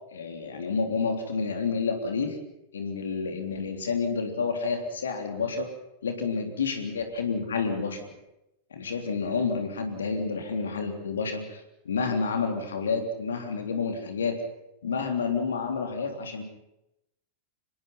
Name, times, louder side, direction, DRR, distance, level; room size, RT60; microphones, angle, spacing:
voice 1, 0.1-2.4 2.7-5.7 6.0-8.0 8.7-14.4 14.8-16.4, left 5 dB, 70° left, 5 dB, 3.5 m, -29 dB
25.5 x 21.0 x 5.8 m, 0.87 s
figure-of-eight pair, 90°, 0 cm